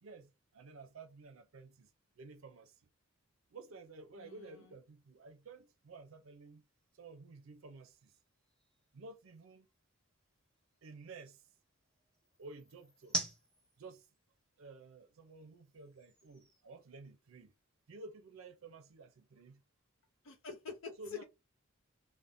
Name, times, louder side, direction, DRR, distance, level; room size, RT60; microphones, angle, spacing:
voice 1, 0.0-1.9 2.2-2.8 3.5-6.6 6.9-8.2 8.9-9.7 10.8-11.4 12.4-13.2 13.8-14.1 14.6-17.5 17.9-19.6 21.0-21.2, right 3 dB, 80° right, 0.5 m, -53 dB
sound 1, 3.3-17.6, right 2 dB, 5° left, 0.7 m, -50 dB
voice 2, 4.2-4.7 20.2-21.2, left 6 dB, 75° left, 0.6 m, -46 dB
3.4 x 2.1 x 2.5 m
head